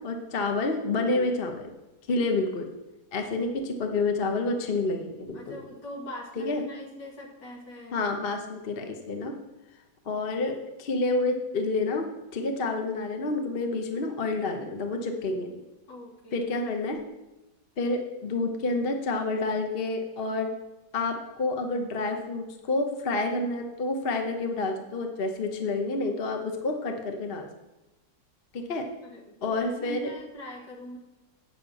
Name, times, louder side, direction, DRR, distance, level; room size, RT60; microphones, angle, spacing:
voice 1, 0.0-1.7 2.1-2.7 3.1-5.5 6.4-6.6 7.9-9.4 10.0-15.5 16.3-17.0 17.8-20.5 20.9-27.5 28.5-28.9 29.4-30.1, left 3 dB, 40° left, 4 dB, 1.0 m, -29 dB
voice 2, 5.3-8.0 10.1-10.2 15.9-16.5 29.0-31.0, left 1 dB, 75° left, -2 dB, 2.7 m, -42 dB
9.1 x 5.8 x 7.1 m, 1.0 s
omnidirectional pair, 1.9 m